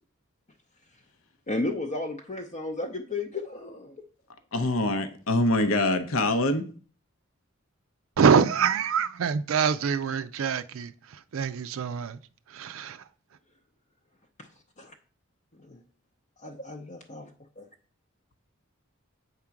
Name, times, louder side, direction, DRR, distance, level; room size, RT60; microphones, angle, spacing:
voice 1, 1.5-4.0 14.4-14.5 14.8-14.9 15.6-15.8 16.4-17.3 17.6-17.7, left 2 dB, 40° left, 0.7 m, -34 dB
voice 2, 4.5-6.6, left 2 dB, 75° left, 0.8 m, -24 dB
voice 3, 8.2-12.2 12.5-13.0, right 6 dB, 80° right, 0.4 m, -25 dB
8.1 x 3.7 x 5.8 m
head